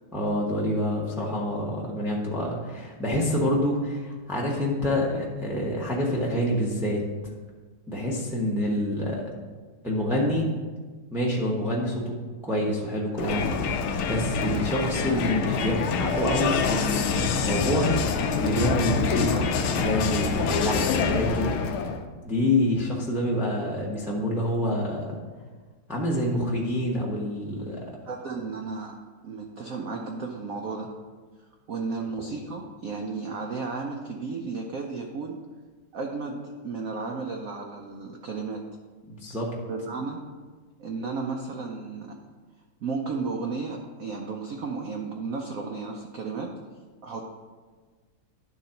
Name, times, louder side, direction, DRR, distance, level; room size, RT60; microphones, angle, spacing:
voice 1, 0.1-7.0 7.9-9.2 9.8-10.5 11.1-12.2 12.4-13.7 14.1-17.9 18.4-21.5 22.2-25.2 25.9-27.8 39.1-39.5, left 1 dB, ahead, -4 dB, 0.5 m, -27 dB
Crowd, 13.2-22.0, left 5 dB, 80° left, 1.5 m, -26 dB
voice 2, 28.1-29.0 29.2-30.9 31.7-35.4 35.9-38.6 39.7-40.2 40.8-42.2 42.8-46.5 47.0-47.2, right 4 dB, 85° right, 1 dB, 0.7 m, -33 dB
10.5 x 3.9 x 5.7 m, 1.4 s
omnidirectional pair, 2.3 m